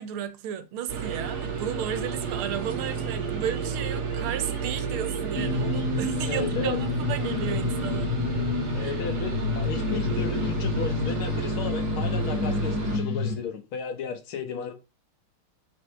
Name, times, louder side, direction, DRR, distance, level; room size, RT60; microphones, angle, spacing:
voice 1, 0.0-8.1 8.8-9.0, right 9 dB, 85° right, 1.7 m, -33 dB
sound 1, 0.9-13.0, right 6 dB, 50° right, 2.1 m, -31 dB
sound 2, 5.3-13.4, left 5 dB, 50° left, 1.5 m, -29 dB
voice 2, 6.3-6.8 8.7-14.7, left 6 dB, 80° left, 2.0 m, -34 dB
4.9 x 4.6 x 4.5 m
omnidirectional pair, 2.3 m